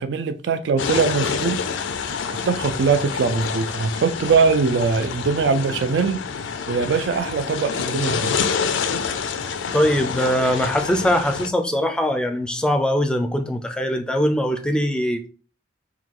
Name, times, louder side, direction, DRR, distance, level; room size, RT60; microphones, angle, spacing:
voice 1, 0.0-1.6 2.5-6.2 6.7-8.3, right 5 dB, 65° right, 0.4 m, -21 dB
sound 1, 0.8-11.5, left 6 dB, 85° left, 0.4 m, -27 dB
voice 2, 9.7-15.2, equal, 5° left, 0.4 m, -21 dB
4.6 x 2.3 x 3.6 m
head